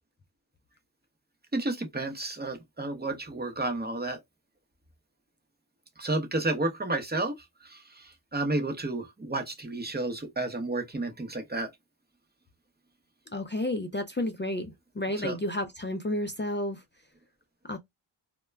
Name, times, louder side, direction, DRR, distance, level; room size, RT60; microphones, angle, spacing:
voice 1, 1.5-4.2 6.0-7.3 7.7-11.7 15.2-15.4, right 2 dB, 20° right, 0.7 m, -31 dB
voice 2, 13.3-16.8 17.7-17.8, left 1 dB, 25° left, 0.3 m, -31 dB
2.2 x 2.1 x 3.2 m
wide cardioid pair, 65°, 49 cm